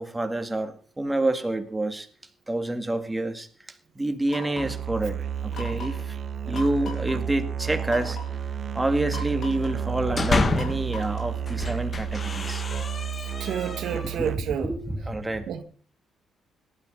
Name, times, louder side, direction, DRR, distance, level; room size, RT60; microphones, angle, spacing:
voice 1, 0.0-2.1 2.5-3.5 4.0-6.2 6.5-8.2 8.7-12.6 14.0-14.3 14.6-15.5, right 2 dB, 15° right, 2.0 m, -28 dB
sound 1, 4.3-4.8 5.5-6.1 6.5-7.2 7.9-8.3 9.1-9.8 10.6-11.4, left 3 dB, 65° left, 5.0 m, -39 dB
Musical instrument, 4.6-14.7, right 8 dB, 50° right, 0.8 m, -31 dB
sound 2, 9.9-10.9 11.4-14.2, left 4 dB, 35° left, 1.4 m, -29 dB
voice 2, 13.2-14.7 15.5-15.6, right 8 dB, 75° right, 1.8 m, -30 dB
18.5 x 12.5 x 3.9 m
cardioid pair, 90°, 0 cm